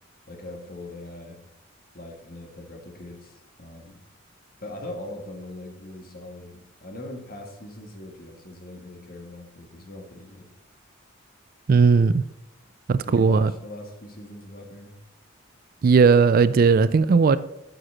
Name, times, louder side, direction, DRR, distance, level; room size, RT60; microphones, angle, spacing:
voice 1, 0.3-1.4 1.9-4.0 4.6-10.5 13.0-15.0, left 1 dB, 45° left, 2 dB, 1.8 m, -40 dB
voice 2, 11.7-12.2 12.9-13.5 15.8-17.4, right 5 dB, 45° right, 15 dB, 0.3 m, -17 dB
8.0 x 5.9 x 7.2 m, 0.87 s
head